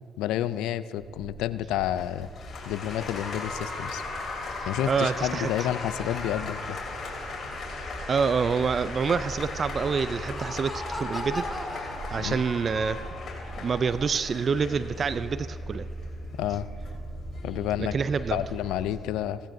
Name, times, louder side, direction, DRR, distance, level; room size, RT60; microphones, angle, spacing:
voice 1, 0.2-2.3 2.6-4.0 4.6-6.8 12.2-12.4 16.4-16.7 17.4-17.9 18.3-19.4, left 12 dB, 85° left, 15 dB, 0.3 m, -30 dB
sound 1, 1.0-19.0, right 1 dB, 20° right, 3.5 m, -41 dB
Applause, 1.8-19.0, left 3 dB, 55° left, 3.4 m, -38 dB
voice 2, 4.6-5.7 8.1-11.4 11.7-13.0 13.6-15.9 17.8-18.4, right 5 dB, 50° right, 14 dB, 0.4 m, -27 dB
Laughter, 9.7-12.8, left 1 dB, ahead, 1.8 m, -37 dB
17.0 x 15.5 x 2.7 m, 2.3 s
supercardioid pair, 60°, 0 cm